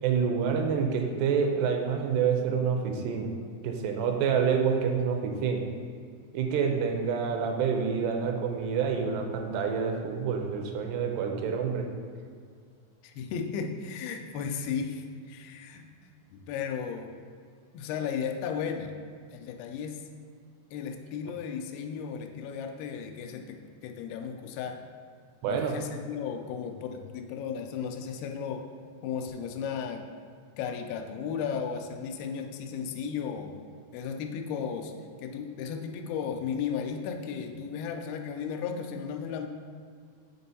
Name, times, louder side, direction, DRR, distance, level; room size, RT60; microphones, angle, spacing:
voice 1, 0.0-3.3 3.6-5.7 6.3-11.9 25.4-25.8, right 6 dB, 85° right, 3 dB, 2.6 m, -27 dB
voice 2, 13.0-15.9 16.3-17.1 17.7-18.9 19.3-20.0 20.7-24.8 25.5-28.7 29.0-30.1 30.6-33.5 33.9-34.9 35.2-39.5, left 7 dB, 85° left, 4 dB, 2.2 m, -35 dB
6.8 x 4.4 x 4.1 m, 2.2 s
omnidirectional pair, 4.9 m